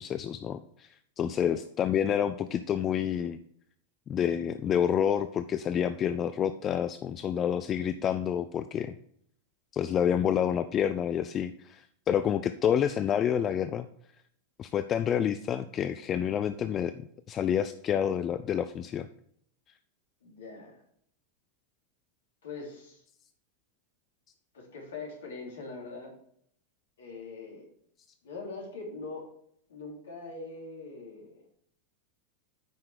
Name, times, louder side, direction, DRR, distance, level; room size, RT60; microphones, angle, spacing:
voice 1, 0.0-3.4 4.1-9.0 9.7-13.9 14.6-16.9 17.3-19.1, left 9 dB, 30° left, 11 dB, 0.4 m, -28 dB
voice 2, 20.2-20.8 22.4-23.0 24.5-26.1 27.0-27.6 28.2-29.3 29.7-31.4, left 3 dB, 65° left, -1 dB, 3.2 m, -42 dB
9.3 x 5.8 x 4.9 m, 0.67 s
figure-of-eight pair, 90°, 0 cm